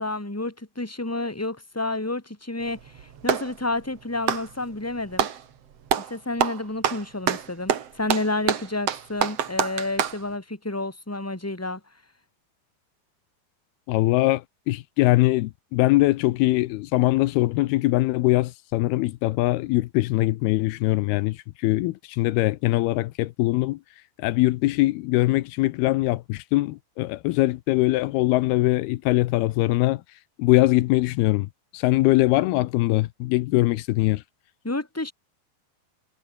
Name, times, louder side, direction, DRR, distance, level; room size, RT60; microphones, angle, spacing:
voice 1, 0.0-2.8 3.2-5.3 6.0-11.8 34.6-35.1, left 2 dB, 5° left, 3.5 m, -30 dB
Clapping, 2.6-3.5 4.2-5.4 5.9-6.1 6.4-10.2, right 8 dB, 50° right, 2.4 m, -26 dB
voice 2, 13.9-14.4 14.7-21.4 21.6-23.8 24.2-30.0 30.4-31.5 31.7-34.2, left 18 dB, 85° left, 2.7 m, -22 dB
omnidirectional pair, 4.4 m